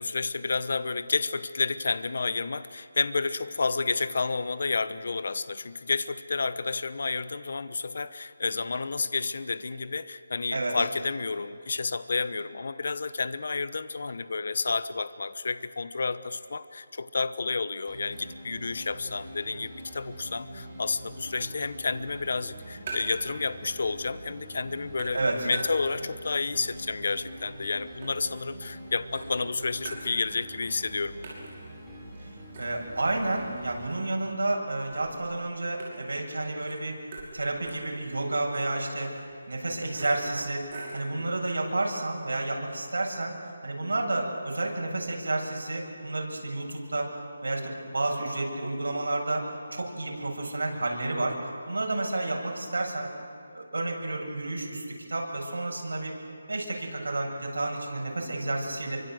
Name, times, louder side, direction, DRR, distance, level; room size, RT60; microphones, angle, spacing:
voice 1, 0.0-31.2, left 4 dB, 50° left, 14 dB, 1.0 m, -30 dB
sound 1, 17.9-33.9, right 1 dB, ahead, 4.1 m, -44 dB
sound 2, 22.3-23.4 23.6-24.3 24.6-26.2 26.6-28.8 29.1-30.6 30.8-30.9 31.2-41.1, right 2 dB, 25° right, 5.9 m, -45 dB
voice 2, 32.6-37.0 37.3-39.1 39.5-43.4 43.6-47.1 47.4-53.1 53.5-56.1 56.5-59.0, right 2 dB, 90° right, 0 dB, 7.7 m, -30 dB
28.0 x 24.5 x 7.9 m, 2.5 s
hypercardioid pair, 180°, 0 cm